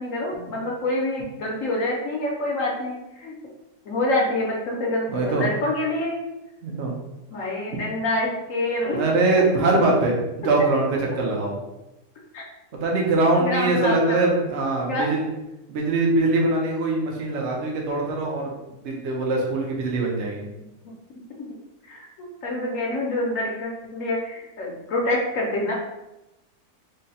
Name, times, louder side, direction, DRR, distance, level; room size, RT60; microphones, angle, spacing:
voice 1, 0.0-3.3 3.8-6.2 7.3-9.0 9.5-9.6 12.3-12.4 13.4-14.3 14.9-15.1 21.8-25.7, left 1 dB, 60° left, -2 dB, 1.0 m, -26 dB
voice 2, 5.1-5.5 6.6-7.0 8.8-11.6 12.7-15.3 15.7-20.4, right 2 dB, 55° right, -1 dB, 0.9 m, -23 dB
3.8 x 2.2 x 4.1 m, 0.95 s
omnidirectional pair, 1.8 m